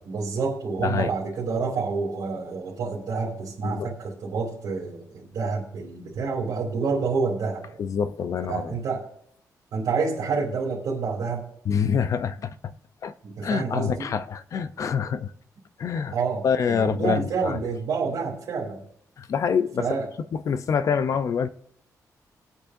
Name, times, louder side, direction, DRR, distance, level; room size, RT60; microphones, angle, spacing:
voice 1, 0.1-7.8 8.5-9.0 9.7-11.4 13.2-14.1 16.1-18.8 19.8-20.1, right 4 dB, 80° right, 2.9 m, -28 dB
voice 2, 0.8-1.1 3.6-3.9 7.8-8.8 11.7-12.7 13.0-13.1 13.4-15.3 15.8-16.1 16.4-17.6 19.2-20.0 20.3-21.5, left 7 dB, 55° left, 0.6 m, -26 dB
20.0 x 8.7 x 2.7 m
wide cardioid pair, 150°, 7 cm